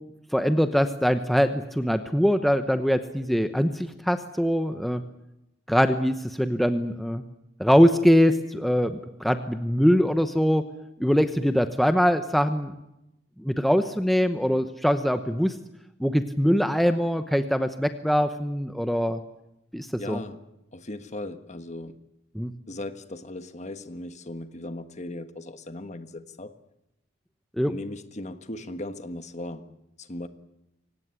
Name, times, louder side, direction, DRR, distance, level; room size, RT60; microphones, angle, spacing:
voice 1, 0.3-5.0 5.7-7.2 7.6-10.7 11.0-12.7 13.4-15.5 16.0-19.2 19.7-20.2 22.3-22.5 27.6-27.7, equal, ahead, 8 dB, 0.9 m, -23 dB
voice 2, 20.0-20.4 20.7-22.0 22.7-26.5 27.7-29.7 30.0-30.3, left 1 dB, 35° left, 9 dB, 1.5 m, -37 dB
24.5 x 18.5 x 9.7 m, 0.89 s
head